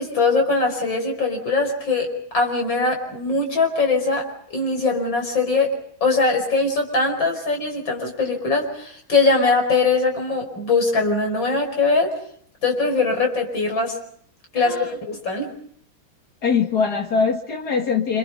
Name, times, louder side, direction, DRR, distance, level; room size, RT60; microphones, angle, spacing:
voice 1, 0.0-4.3 4.5-5.8 6.0-12.1 12.6-14.0 14.5-15.5, left 3 dB, 70° left, 3 dB, 6.0 m, -21 dB
voice 2, 14.5-14.9 16.4-18.2, left 5 dB, 50° left, 4 dB, 2.3 m, -22 dB
28.0 x 27.5 x 5.4 m, 0.63 s
omnidirectional pair, 2.2 m